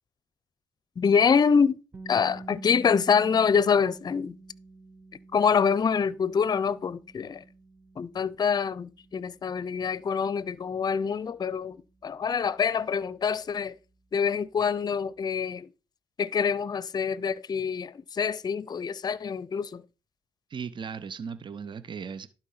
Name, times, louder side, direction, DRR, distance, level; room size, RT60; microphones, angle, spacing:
voice 1, 1.0-1.8 2.1-4.4 5.3-7.4 8.0-13.8 14.1-15.7 16.2-19.8, left 6 dB, 40° left, 0.5 m, -25 dB
sound 1, 1.9-13.8, right 3 dB, 20° right, 1.0 m, -49 dB
voice 2, 20.5-22.3, right 6 dB, 45° right, 0.9 m, -37 dB
11.5 x 4.4 x 5.7 m
cardioid pair, 80°, 11 cm